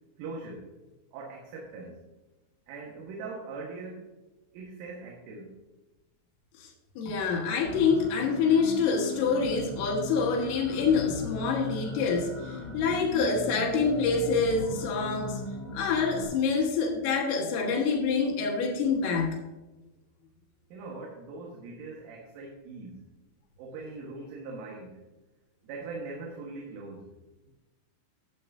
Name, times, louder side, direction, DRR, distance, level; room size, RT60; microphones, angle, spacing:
voice 1, 0.2-0.7 1.1-2.0 2.7-4.1 4.5-5.6 20.7-23.0 23.6-25.0 25.6-27.1, right 3 dB, 80° right, -2 dB, 4.0 m, -41 dB
voice 2, 7.0-15.4 15.7-19.4, left 5 dB, 90° left, 0 dB, 4.3 m, -26 dB
sound 1, 7.7-16.3, left 3 dB, 35° left, 3.8 m, -38 dB
16.0 x 7.6 x 2.7 m, 1.1 s
omnidirectional pair, 5.7 m